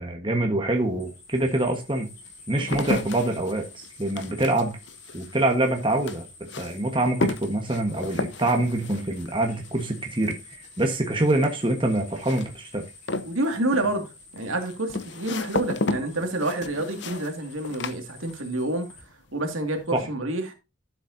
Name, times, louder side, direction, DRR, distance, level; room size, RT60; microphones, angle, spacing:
voice 1, 0.0-2.1 2.5-4.8 5.1-6.3 6.6-10.3 10.8-12.8 19.9-20.0, right 1 dB, 25° right, 1.3 m, -25 dB
sound 1, 0.7-0.8 1.5-18.7 19.0-19.6, left 2 dB, 55° left, 0.7 m, -34 dB
sound 2, 1.0-19.0, left 3 dB, 35° left, 6.1 m, -49 dB
voice 2, 13.2-14.1 14.3-18.8 19.3-20.5, right 1 dB, 75° right, 2.3 m, -28 dB
12.5 x 7.4 x 2.7 m
head